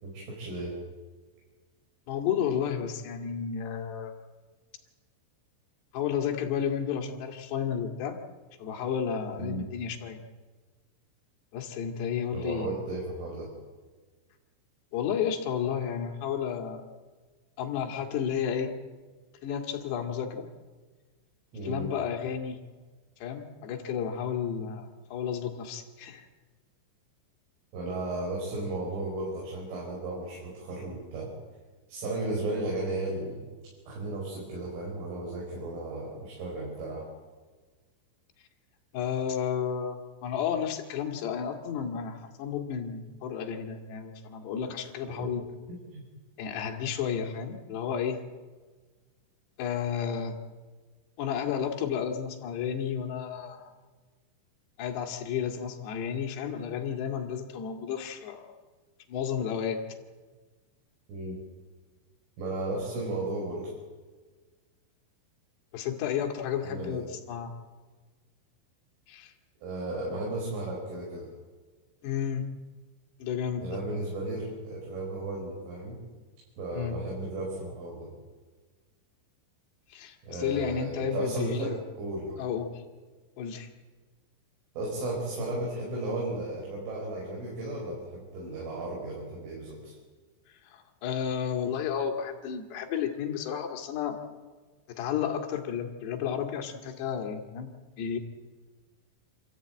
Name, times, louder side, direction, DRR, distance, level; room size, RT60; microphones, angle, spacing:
voice 1, 0.0-0.7 9.4-9.7 12.3-13.5 21.5-21.9 27.7-31.3 31.9-33.4 33.9-37.1 45.2-45.3 45.9-46.0 61.1-61.4 62.4-63.7 66.6-67.0 69.6-71.3 73.6-76.0 76.6-78.1 80.2-81.7 82.0-82.4 84.8-89.9, right 2 dB, 75° right, -3 dB, 7.3 m, -34 dB
voice 2, 2.1-4.1 5.9-8.2 8.6-10.2 11.5-12.9 14.9-16.8 17.6-18.7 19.4-20.5 21.6-22.6 23.2-26.3 38.9-45.4 46.4-48.2 49.6-50.4 51.2-53.8 54.8-58.5 59.1-59.8 65.7-67.5 69.1-69.3 72.0-72.5 73.2-73.8 76.7-77.0 79.9-81.8 82.4-82.8 83.4-83.7 90.7-94.2 94.9-97.7 98.0-98.2, left 8 dB, 65° left, 3 dB, 3.9 m, -32 dB
27.5 x 14.5 x 9.0 m, 1.4 s
omnidirectional pair, 5.7 m